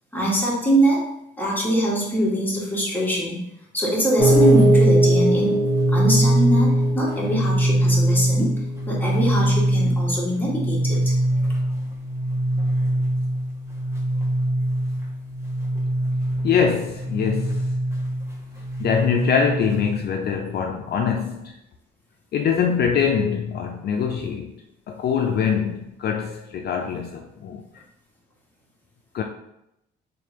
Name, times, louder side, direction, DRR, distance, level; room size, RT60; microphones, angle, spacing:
voice 1, 0.1-1.0 1.4-3.4 3.7-5.6 5.9-8.6 8.9-11.0, equal, 10° left, -4 dB, 1.3 m, -23 dB
sound 1, 4.2-20.0, right 1 dB, 15° right, 1.0 m, -21 dB
voice 2, 16.4-17.7 18.8-21.5 22.3-24.5 24.9-27.6 29.1-29.2, left 7 dB, 55° left, 3 dB, 0.4 m, -23 dB
3.1 x 2.5 x 4.2 m, 0.84 s
cardioid pair, 90°, 20 cm